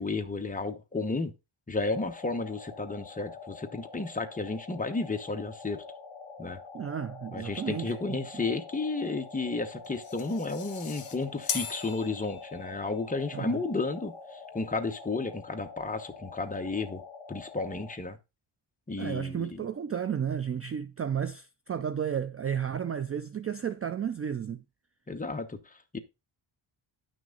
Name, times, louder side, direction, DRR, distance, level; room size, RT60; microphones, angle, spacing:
voice 1, 0.0-1.3 1.7-5.8 6.4-6.6 7.3-17.0 17.3-18.2 18.9-19.6 25.1-26.0, left 3 dB, 15° left, 1.0 m, -33 dB
sound 1, 1.9-18.0, left 4 dB, 65° left, 2.4 m, -46 dB
voice 2, 6.7-8.4 13.3-13.6 19.0-24.6, right 8 dB, 30° right, 0.4 m, -33 dB
sound 2, 9.8-12.8, left 7 dB, 45° left, 1.7 m, -38 dB
10.5 x 6.2 x 3.8 m
wide cardioid pair, 155°, 48 cm